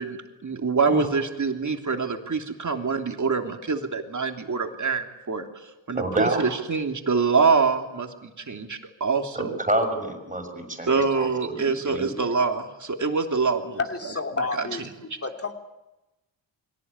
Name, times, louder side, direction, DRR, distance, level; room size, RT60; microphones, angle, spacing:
voice 1, 0.0-5.5 5.9-9.6 10.9-13.8 14.4-14.7, right 4 dB, 35° right, 4 dB, 3.2 m, -25 dB
voice 2, 5.9-6.4 9.3-12.2, right 1 dB, 15° right, 5 dB, 6.2 m, -28 dB
voice 3, 13.8-15.5, left 4 dB, 25° left, 4 dB, 3.2 m, -30 dB
23.5 x 17.5 x 9.8 m, 1.0 s
supercardioid pair, 65°, 50 cm